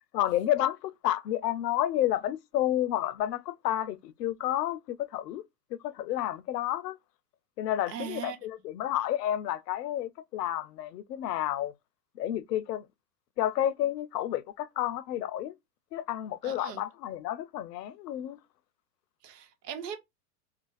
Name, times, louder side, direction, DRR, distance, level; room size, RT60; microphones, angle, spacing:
voice 1, 0.1-5.4 5.7-7.0 7.6-11.7 12.2-12.8 13.4-15.5 15.9-18.4, left 12 dB, 75° left, 0.6 m, -30 dB
voice 2, 7.9-8.4 16.4-16.8 19.2-20.0, right 8 dB, 70° right, 1.1 m, -39 dB
2.5 x 2.2 x 3.8 m
hypercardioid pair, 110°, 50 cm